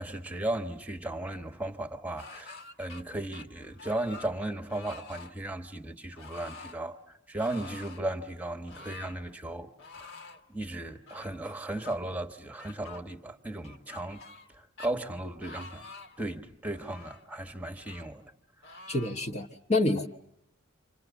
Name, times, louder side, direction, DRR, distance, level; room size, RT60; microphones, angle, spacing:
voice 1, 0.0-9.7 10.0-10.1 10.5-14.2 14.5-15.9 16.2-18.2, right 1 dB, 5° right, 1.1 m, -36 dB
sound 1, 2.2-3.0 3.3-4.3 4.7-5.3 6.2-6.8 7.4-8.0 8.7-9.2 9.8-10.4 11.1-12.0 12.6-13.0 13.6-14.5 14.8-14.9 15.4-16.2 16.7-17.3 17.8-18.1 18.6-19.2, left 4 dB, 60° left, 1.4 m, -48 dB
voice 2, 18.9-20.1, left 2 dB, 35° left, 1.0 m, -28 dB
29.0 x 26.0 x 7.1 m
head